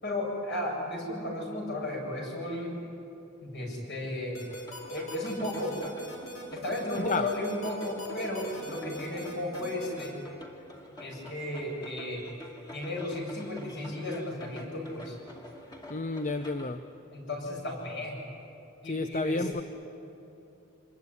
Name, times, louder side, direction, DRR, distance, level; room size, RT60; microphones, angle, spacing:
voice 1, 0.0-2.8 3.4-4.4 4.9-5.8 6.5-10.2 11.0-12.2 12.7-15.2 17.1-18.2 18.8-19.6, left 1 dB, 55° left, 0 dB, 7.6 m, -34 dB
sound 1, 4.3-10.1, equal, 90° left, 5.8 m, -42 dB
sound 2, 4.5-16.8, equal, 20° left, 2.4 m, -48 dB
voice 2, 7.0-7.3 15.9-16.8 18.9-19.6, left 3 dB, 35° left, 9 dB, 0.7 m, -31 dB
26.5 x 21.0 x 9.8 m, 2.9 s
head